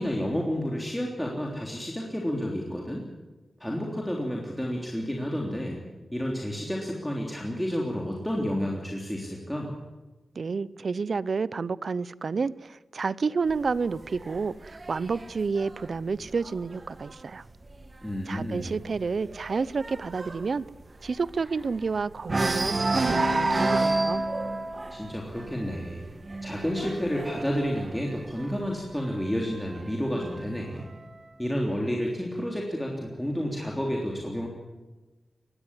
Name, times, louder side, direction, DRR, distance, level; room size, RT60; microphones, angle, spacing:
voice 1, 0.0-3.1 3.6-5.8 6.1-9.8 18.0-18.7 24.9-26.0 26.4-30.9 31.4-34.5, equal, 5° left, -2 dB, 3.4 m, -30 dB
voice 2, 10.3-17.4 18.3-20.7 21.0-24.2, right 4 dB, 55° right, 19 dB, 0.7 m, -30 dB
sound 1, 13.5-17.1 17.5-17.9 18.1-18.2 18.6-21.9 22.2-28.8 29.7-30.7, right 2 dB, 35° right, 1.9 m, -30 dB
21.0 x 16.5 x 9.8 m, 1.1 s
wide cardioid pair, 120°, 0 cm